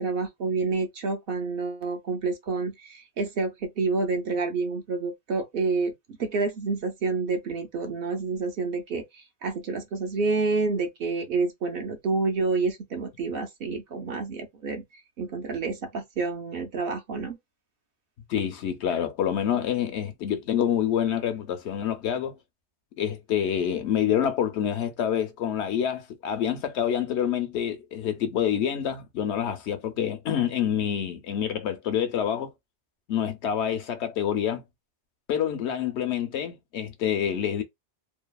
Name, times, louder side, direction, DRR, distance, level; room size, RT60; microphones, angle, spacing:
voice 1, 0.0-5.9 6.2-14.8 15.2-17.4, right 4 dB, 65° right, 0.7 m, -28 dB
voice 2, 18.3-22.3 23.0-32.5 33.1-34.6 35.3-37.6, left 9 dB, 80° left, 0.9 m, -27 dB
2.7 x 2.2 x 2.2 m
omnidirectional pair, 1.1 m